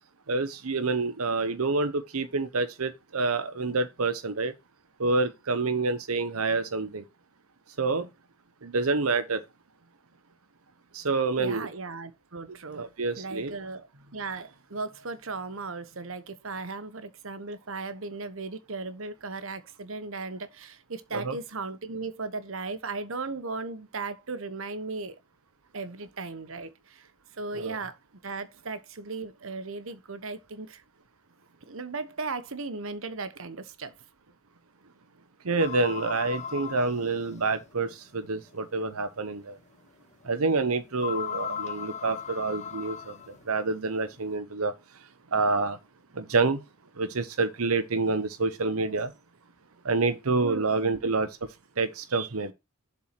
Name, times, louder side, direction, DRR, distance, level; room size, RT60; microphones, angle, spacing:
voice 1, 0.3-4.5 5.0-7.0 7.8-8.1 8.6-9.4 10.9-11.7 12.7-13.6 21.1-21.3 27.5-27.8 35.4-39.6 40.2-45.8 46.1-46.6 47.0-49.1 49.8-52.5, right 3 dB, 85° right, 0.9 m, -28 dB
voice 2, 11.4-12.9 13.2-25.2 25.7-27.1 27.4-28.0 28.2-30.8 31.7-33.9 50.4-51.0, right 3 dB, 65° right, 1.1 m, -37 dB
sound 1, 35.6-37.6 38.3-38.4 39.0-39.1 41.0-43.4, left 8 dB, 30° left, 0.4 m, -37 dB
7.3 x 4.6 x 5.9 m
head